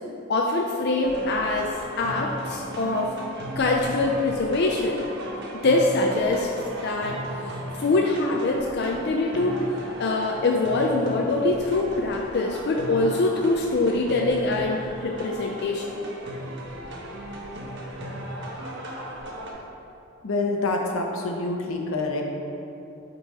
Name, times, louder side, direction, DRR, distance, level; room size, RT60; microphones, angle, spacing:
voice 1, 0.3-3.1 3.6-5.1 5.5-6.5 6.8-7.2 7.5-9.6 10.0-15.9, left 2 dB, 55° left, 1 dB, 0.4 m, -24 dB
sound 1, 1.0-19.5, equal, 60° right, 1.1 m, -36 dB
voice 2, 20.2-22.2, left 2 dB, 85° left, 2 dB, 0.8 m, -26 dB
8.2 x 4.0 x 4.0 m, 2.8 s
head